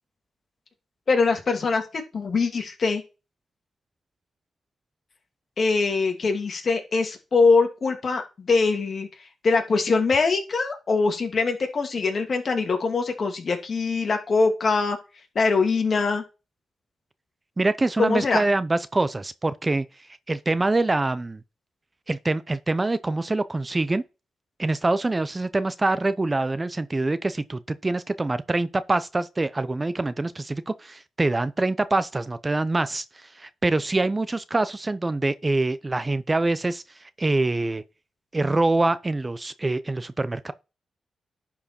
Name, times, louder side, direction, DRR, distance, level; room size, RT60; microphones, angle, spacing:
voice 1, 1.1-1.8 2.1-3.0 5.6-9.1 9.4-15.0 15.3-16.2 18.0-18.4, left 4 dB, 50° left, 2.5 m, -23 dB
voice 2, 17.6-19.9 20.3-21.4 22.1-24.0 24.6-37.8 38.3-40.5, right 2 dB, 25° right, 0.6 m, -25 dB
11.0 x 4.8 x 4.4 m
cardioid pair, 75°, 0 cm